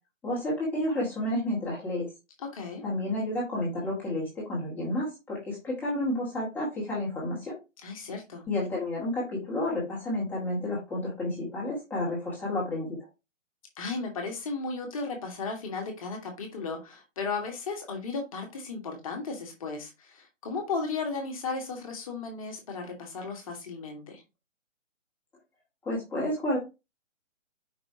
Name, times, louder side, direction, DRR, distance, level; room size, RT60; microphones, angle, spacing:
voice 1, 0.2-2.1 2.8-7.6 8.5-13.0 25.8-26.6, left 1 dB, 5° left, 1.9 m, -30 dB
voice 2, 2.4-2.8 7.8-8.5 13.8-24.2, left 4 dB, 25° left, 1.7 m, -35 dB
5.4 x 4.8 x 4.7 m
figure-of-eight pair, 140°, 39 cm